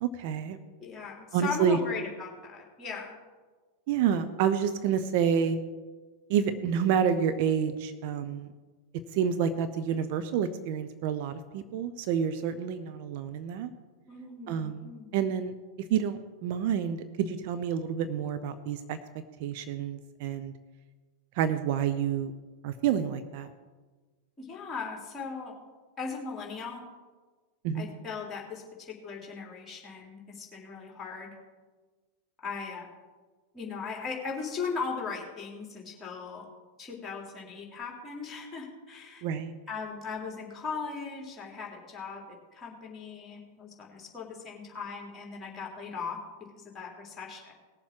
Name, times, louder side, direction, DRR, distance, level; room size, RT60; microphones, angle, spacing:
voice 1, 0.0-0.6 1.3-1.8 3.9-5.6 6.3-8.5 9.1-13.7 14.5-15.5 15.9-19.0 19.4-20.5 21.4-22.3 22.6-23.5 27.6-27.9 39.2-39.5, right 8 dB, 50° right, 9 dB, 0.7 m, -28 dB
voice 2, 0.8-3.1 14.1-15.1 24.4-25.5 26.0-26.8 27.7-31.3 32.4-32.9 33.5-36.5 36.8-39.2 39.7-42.2 42.5-46.2 46.6-47.5, left 5 dB, 15° left, -1 dB, 3.3 m, -38 dB
19.0 x 7.2 x 4.7 m, 1.3 s
figure-of-eight pair, 90°, 0 cm